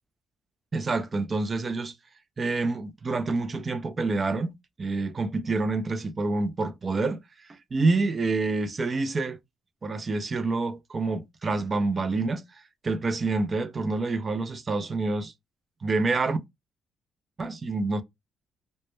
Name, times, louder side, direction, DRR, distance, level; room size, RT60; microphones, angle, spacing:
voice 1, 0.7-1.9 2.4-4.5 4.8-7.2 7.5-9.4 9.8-12.4 12.8-15.3 15.8-16.4 17.4-18.0, right 3 dB, 35° right, 0.3 m, -27 dB
2.1 x 2.1 x 3.0 m
cardioid pair, 90°, 0 cm